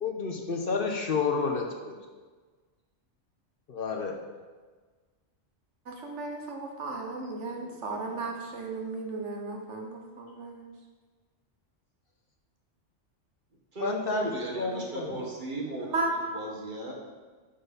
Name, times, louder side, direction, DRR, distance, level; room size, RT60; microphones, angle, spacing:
voice 1, 0.0-1.9 3.7-4.1 13.8-14.3 14.5-15.2, left 4 dB, 55° left, 3 dB, 0.9 m, -30 dB
voice 2, 5.9-10.7 15.8-16.1, right 3 dB, 75° right, 2 dB, 1.4 m, -35 dB
voice 3, 7.5-8.3 13.7-16.0 16.3-16.9, right 2 dB, 45° right, -2 dB, 1.6 m, -37 dB
8.9 x 4.4 x 5.2 m, 1.4 s
omnidirectional pair, 1.2 m